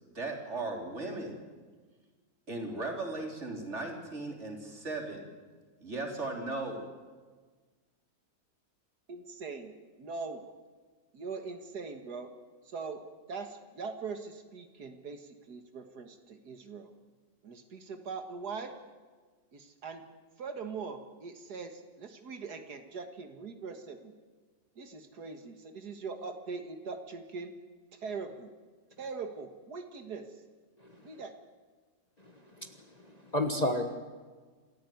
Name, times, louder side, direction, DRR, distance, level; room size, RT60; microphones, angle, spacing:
voice 1, 0.0-1.4 2.5-5.3 5.8-6.9, right 2 dB, 45° right, 2 dB, 3.9 m, -37 dB
voice 2, 9.1-9.7 10.0-10.4 11.1-12.3 12.7-13.0 13.3-16.9 17.4-18.7 19.5-20.0 20.4-24.1 24.8-27.5 28.0-28.5 29.0-30.3 31.0-31.3, right 4 dB, 80° right, 6 dB, 2.2 m, -41 dB
voice 3, 32.2-32.7 33.0-34.0, left 1 dB, 25° left, 6 dB, 1.4 m, -32 dB
27.5 x 14.0 x 9.4 m, 1.4 s
omnidirectional pair, 1.7 m